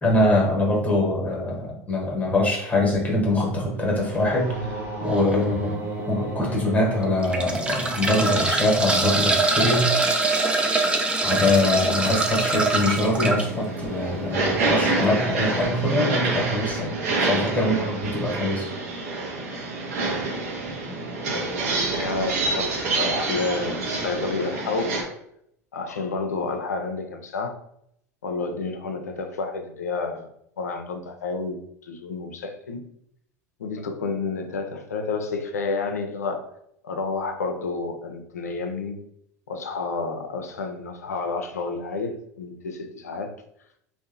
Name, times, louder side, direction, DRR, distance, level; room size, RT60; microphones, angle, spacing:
voice 1, 0.0-10.0 11.2-18.7 20.7-20.8, left 1 dB, 15° left, -1 dB, 0.8 m, -23 dB
sound 1, 3.1-10.2, right 2 dB, 30° right, 0.9 m, -36 dB
sound 2, 5.1-5.4 6.0-6.1 7.0-13.4 15.0-15.2 15.4-15.5, right 2 dB, 10° right, 0.4 m, -23 dB
sound 3, 12.9-25.0, right 3 dB, 70° right, 0.6 m, -27 dB
voice 2, 21.9-25.0 25.7-27.5 28.2-30.3 30.6-32.8 33.6-36.5 36.8-39.0 39.5-43.3, left 4 dB, 85° left, 6 dB, 0.3 m, -30 dB
2.7 x 2.0 x 2.4 m, 0.73 s
hypercardioid pair, 80°, 8 cm